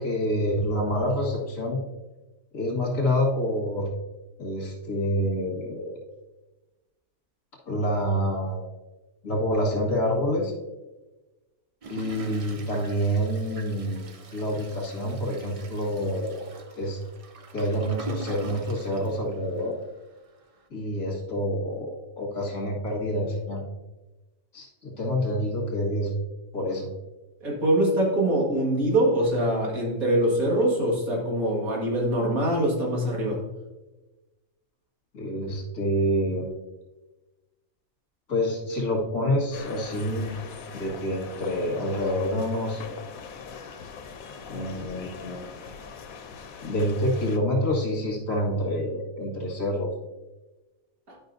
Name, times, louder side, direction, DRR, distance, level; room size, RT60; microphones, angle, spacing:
voice 1, 0.0-1.8 2.5-3.9 4.4-5.9 7.7-8.6 9.2-10.5 11.9-16.4 16.8-17.0 17.5-19.8 20.7-23.6 24.5-26.1 26.5-26.9 35.1-36.5 38.3-40.4 40.7-42.8 44.5-45.5 46.6-49.9, equal, 65° left, -1 dB, 2.2 m, -27 dB
Toilet flush, 11.8-19.9 20.3-20.4 20.6-20.7, right 4 dB, 50° right, 0.4 m, -43 dB
voice 2, 27.4-33.4 51.1-51.2, right 1 dB, 85° right, -2 dB, 2.4 m, -23 dB
sound 1, 39.5-47.4, left 6 dB, 90° left, 1.2 m, -42 dB
11.0 x 5.5 x 2.6 m, 1.1 s
omnidirectional pair, 1.4 m